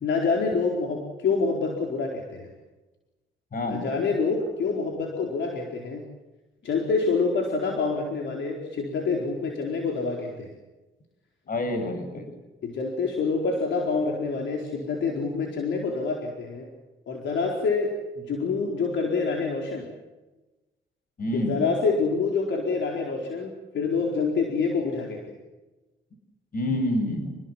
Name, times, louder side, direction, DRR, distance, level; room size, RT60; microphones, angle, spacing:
voice 1, 0.0-2.5 3.6-6.0 6.6-10.5 12.6-16.7 17.1-19.9 21.3-25.2, left 4 dB, 65° left, 1 dB, 4.4 m, -27 dB
voice 2, 3.5-3.9 11.4-12.3 21.2-21.6 26.5-27.4, left 1 dB, 45° left, 7 dB, 7.6 m, -28 dB
28.0 x 21.0 x 7.5 m, 1.1 s
cardioid pair, 90°, 20 cm